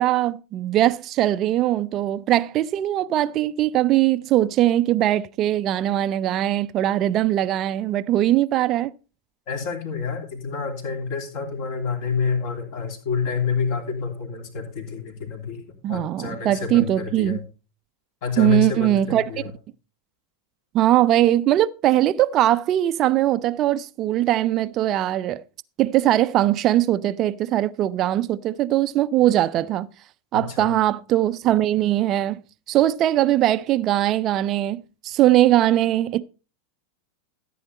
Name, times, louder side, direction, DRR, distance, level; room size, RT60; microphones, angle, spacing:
voice 1, 0.0-8.9 15.8-17.4 18.4-19.4 20.7-25.4 25.8-29.9 30.3-32.4 32.7-36.2, right 13 dB, 35° right, 0.4 m, -21 dB
voice 2, 9.5-15.6 15.9-17.4 18.2-19.5 30.3-30.7, left 5 dB, 45° left, 3.0 m, -28 dB
14.0 x 8.4 x 4.0 m
figure-of-eight pair, 90°, 0 cm